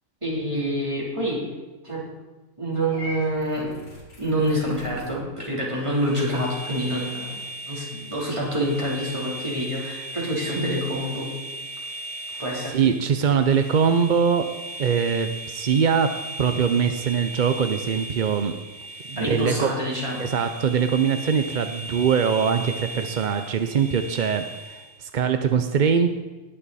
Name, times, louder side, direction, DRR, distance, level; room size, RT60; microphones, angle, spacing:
voice 1, 0.2-1.4 1.8-2.0 2.6-3.7 4.2-7.4 7.7-11.3 12.4-12.8 19.2-20.3, equal, 20° right, -5 dB, 3.5 m, -27 dB
Purr / Meow, 2.9-5.1, left 1 dB, 85° left, 3.0 m, -41 dB
sound 1, 5.8-25.0, right 2 dB, 35° right, 0.9 m, -37 dB
voice 2, 12.7-14.5 14.8-16.1 16.4-18.5 19.0-19.7 20.2-26.1, right 7 dB, 55° right, 8 dB, 0.5 m, -22 dB
19.5 x 7.7 x 4.2 m, 1.2 s
omnidirectional pair, 1.5 m